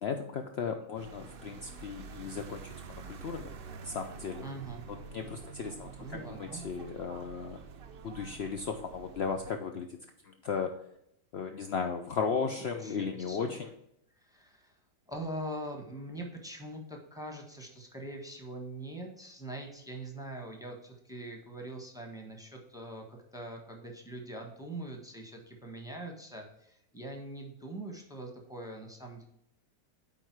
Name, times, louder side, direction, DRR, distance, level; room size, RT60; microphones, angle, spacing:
voice 1, 0.0-2.7 3.1-3.5 3.8-4.4 4.9-7.6 8.0-10.0 10.2-10.8 11.3-13.7, left 5 dB, 75° left, 5 dB, 0.5 m, -35 dB
sound 1, 1.0-9.5, right 5 dB, 85° right, 0.5 m, -47 dB
voice 2, 4.4-4.8 6.0-6.6 12.8-13.5 14.2-14.7 15.1-29.2, right 1 dB, 5° right, 1 dB, 1.0 m, -43 dB
9.2 x 3.8 x 4.6 m, 0.78 s
omnidirectional pair, 1.8 m